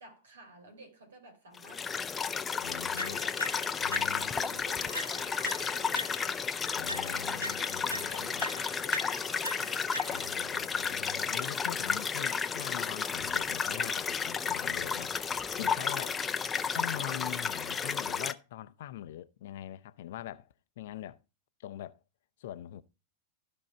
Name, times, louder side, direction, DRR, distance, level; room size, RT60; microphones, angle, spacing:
voice 1, 0.0-1.9 2.7-3.7 4.2-6.4 7.0-10.7 11.7-12.8 16.5-17.1, right 2 dB, 65° right, 3.7 m, -53 dB
sound 1, 1.6-18.3, left 6 dB, 15° left, 0.7 m, -32 dB
voice 2, 2.6-3.2 3.8-4.6 6.7-8.4 10.1-15.1 15.6-16.2 16.7-21.2 21.6-22.0 22.4-22.8, left 12 dB, 55° left, 0.7 m, -43 dB
sound 2, 3.0-4.5 4.9-6.5 6.9-10.5, equal, 90° right, 0.6 m, -41 dB
14.5 x 5.4 x 4.3 m
figure-of-eight pair, 90°, 0 cm